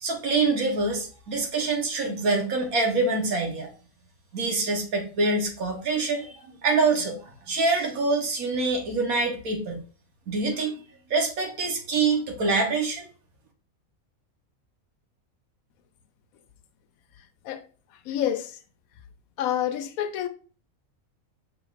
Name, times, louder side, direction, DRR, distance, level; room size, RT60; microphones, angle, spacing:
voice 1, 0.0-3.7 4.3-9.8 10.3-10.8 11.1-13.1, right 3 dB, 85° right, 1.6 m, -25 dB
voice 2, 18.1-18.5 19.4-20.3, left 10 dB, 85° left, 1.0 m, -27 dB
5.7 x 3.5 x 2.5 m
omnidirectional pair, 1.5 m